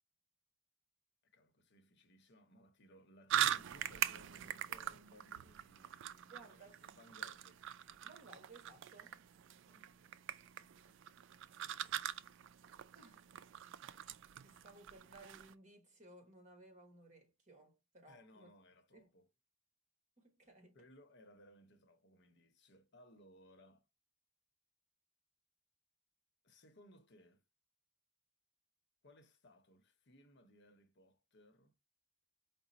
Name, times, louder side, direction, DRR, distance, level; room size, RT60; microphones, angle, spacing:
voice 1, 1.2-7.6 9.7-10.2 10.6-11.8 18.1-19.3 20.7-23.9 26.4-27.4 29.0-31.7, equal, 60° left, 0.8 m, -64 dB
sound 1, 3.3-15.5, right 11 dB, 65° right, 0.3 m, -42 dB
voice 2, 6.3-6.8 8.0-9.2 12.9-13.4 14.4-18.5 18.9-19.1 20.2-20.8, right 2 dB, 40° right, 1.3 m, -60 dB
4.9 x 2.0 x 4.0 m
head